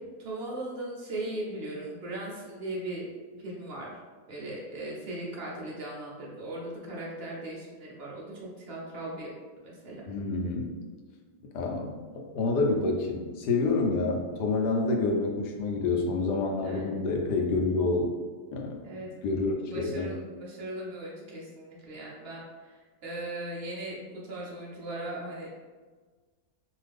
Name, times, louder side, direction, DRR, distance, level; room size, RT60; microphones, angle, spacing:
voice 1, 0.2-3.0 3.4-3.9 4.3-9.3 9.6-10.0 16.6-17.0 18.8-19.1 19.6-25.5, right 1 dB, 65° right, -4 dB, 0.6 m, -38 dB
voice 2, 10.1-10.7 11.5-18.1 18.5-18.8 19.2-20.1, left 3 dB, 80° left, 1 dB, 1.1 m, -28 dB
2.8 x 2.4 x 3.3 m, 1.4 s
omnidirectional pair, 1.8 m